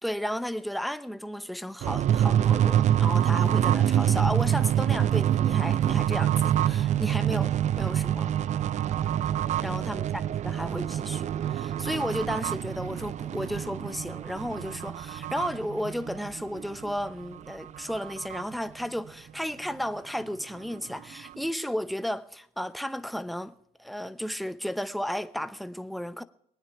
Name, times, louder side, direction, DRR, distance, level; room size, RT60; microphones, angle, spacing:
voice 1, 0.0-8.3 9.6-10.1 10.4-23.5 23.8-26.2, equal, ahead, 0.8 m, -33 dB
sound 1, 1.8-17.1 17.5-17.6 17.8-18.4, right 11 dB, 45° right, 0.4 m, -26 dB
21.5 x 9.6 x 4.7 m
cardioid pair, 110°, 17 cm